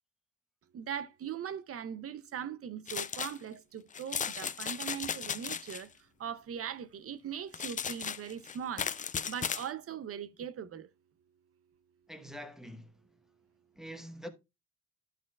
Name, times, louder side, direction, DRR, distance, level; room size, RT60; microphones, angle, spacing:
voice 1, 0.7-5.9 6.2-8.9 9.3-10.9, right 8 dB, 50° right, 0.6 m, -40 dB
sound 1, 2.9-3.4 3.9-5.8 7.5-9.7, left 7 dB, 25° left, 0.4 m, -36 dB
voice 2, 12.1-13.0 13.8-14.3, equal, ahead, 1.0 m, -45 dB
11.5 x 6.4 x 2.3 m
cardioid pair, 90°, 30 cm